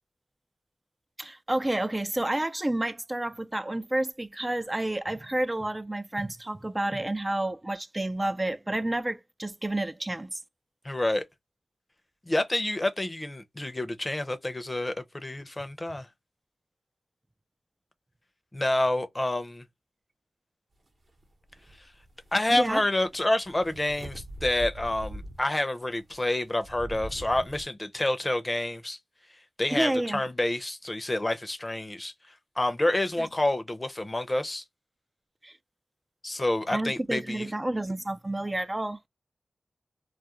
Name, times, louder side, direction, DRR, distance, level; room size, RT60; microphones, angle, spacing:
voice 1, 1.2-10.4 22.5-22.8 29.7-30.2 33.2-33.3 35.4-35.5 36.7-39.0, right 1 dB, 25° right, 0.3 m, -30 dB
voice 2, 10.8-11.2 12.3-16.1 18.5-19.6 22.3-29.0 29.6-32.1 32.6-34.6 36.2-37.5, left 1 dB, 25° left, 0.6 m, -28 dB
sound 1, 21.2-21.3 21.5-25.6 26.1-27.6, right 1 dB, 50° right, 0.8 m, -42 dB
2.4 x 2.1 x 2.9 m
cardioid pair, 50°, 0 cm